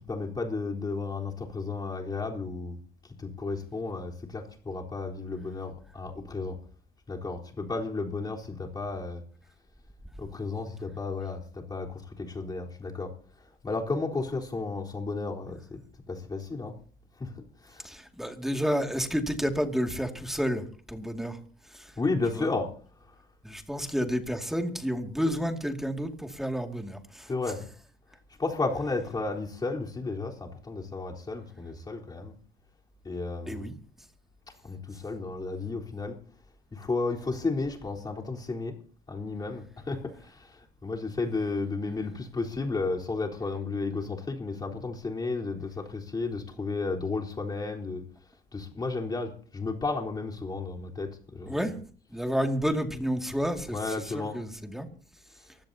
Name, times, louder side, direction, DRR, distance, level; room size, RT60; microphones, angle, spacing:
voice 1, 0.1-2.8 3.2-6.6 7.1-9.2 10.2-13.1 13.6-15.8 16.1-16.7 17.2-17.3 17.6-17.9 22.0-22.7 27.3-27.6 28.4-32.3 33.0-33.7 34.6-36.2 36.7-38.8 39.1-48.0 48.5-51.6 53.4-54.4, left 3 dB, 25° left, 0 dB, 3.9 m, -33 dB
voice 2, 17.8-21.4 21.7-21.9 22.3-22.5 23.4-27.3 33.5-33.7 51.5-51.8 52.1-54.9, equal, ahead, 4 dB, 2.3 m, -30 dB
24.5 x 16.0 x 2.8 m, 0.42 s
cardioid pair, 110°, 17 cm